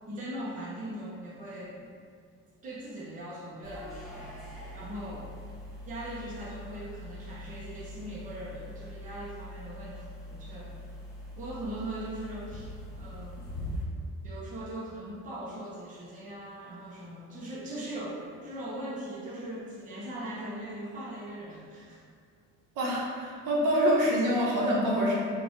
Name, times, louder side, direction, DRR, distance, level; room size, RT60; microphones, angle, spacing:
voice 1, 0.1-1.8 2.6-4.4 4.7-5.3 5.9-10.7 11.3-13.5 14.2-22.0, right 1 dB, 25° right, -6 dB, 0.7 m, -40 dB
sound 1, 3.6-13.8, left 1 dB, ahead, 1.1 m, -43 dB
voice 2, 22.7-25.2, equal, 75° right, -4 dB, 1.1 m, -26 dB
4.2 x 2.4 x 4.5 m, 2.2 s
cardioid pair, 175°, 32 cm